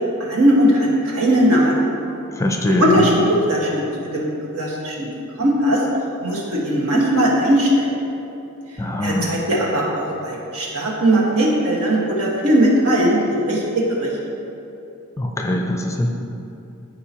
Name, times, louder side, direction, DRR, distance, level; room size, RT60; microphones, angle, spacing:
voice 1, 0.2-1.7 2.7-5.1 5.4-5.8 6.2-7.9 9.0-14.1, equal, 80° right, -3 dB, 1.6 m, -19 dB
voice 2, 2.4-3.1 8.8-9.4 15.2-16.1, left 1 dB, 15° left, 2 dB, 0.5 m, -22 dB
13.5 x 4.9 x 2.9 m, 2.8 s
head